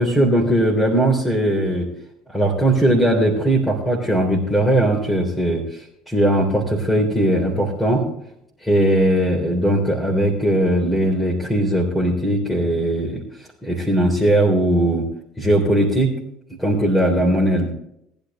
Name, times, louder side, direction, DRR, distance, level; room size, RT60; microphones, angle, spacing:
voice 1, 0.0-1.9 2.3-8.0 8.6-13.2 13.6-15.1 15.4-16.1 16.6-17.7, right 1 dB, 10° left, -2 dB, 3.4 m, -19 dB
20.0 x 10.5 x 3.1 m, 0.76 s
hypercardioid pair, 65°, 0 cm